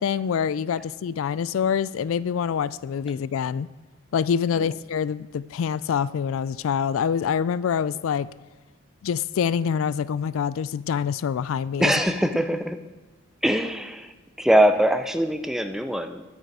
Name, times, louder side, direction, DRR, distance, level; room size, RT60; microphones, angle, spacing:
voice 1, 0.0-3.7 4.1-8.3 9.0-11.9, left 7 dB, 75° left, 0.3 m, -25 dB
voice 2, 11.8-12.8 13.4-14.1 14.4-16.2, equal, ahead, 0.4 m, -22 dB
10.5 x 9.0 x 4.7 m
head